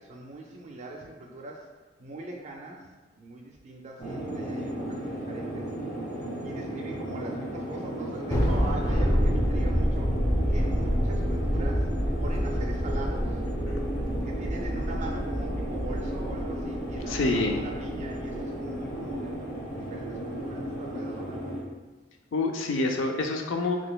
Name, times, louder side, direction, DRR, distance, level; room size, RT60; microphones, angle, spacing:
voice 1, 0.0-1.7 2.0-2.9 3.2-5.7 6.4-10.1 10.5-11.9 12.2-13.4 14.2-19.4 19.7-21.7, right 2 dB, 40° right, 0 dB, 0.3 m, -42 dB
sound 1, 4.0-21.6, right 1 dB, 40° left, 1.1 m, -35 dB
Thunder, 8.3-18.9, equal, 20° left, 0.5 m, -28 dB
voice 2, 17.1-17.6 22.3-23.8, left 2 dB, 90° left, 3 dB, 0.4 m, -27 dB
3.9 x 3.0 x 2.3 m, 1.3 s
head